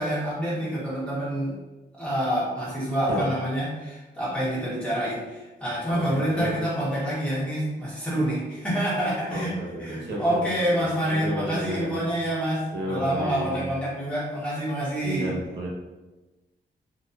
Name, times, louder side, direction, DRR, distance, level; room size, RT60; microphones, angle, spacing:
voice 1, 0.0-1.6 1.9-9.5 9.8-15.3, equal, 5° left, -8 dB, 1.3 m, -27 dB
voice 2, 5.9-6.5 9.3-10.8 11.1-12.1 12.7-13.7 15.0-15.7, right 1 dB, 85° right, -4 dB, 0.9 m, -32 dB
3.0 x 2.8 x 2.6 m, 1.1 s
wide cardioid pair, 115°, 18 cm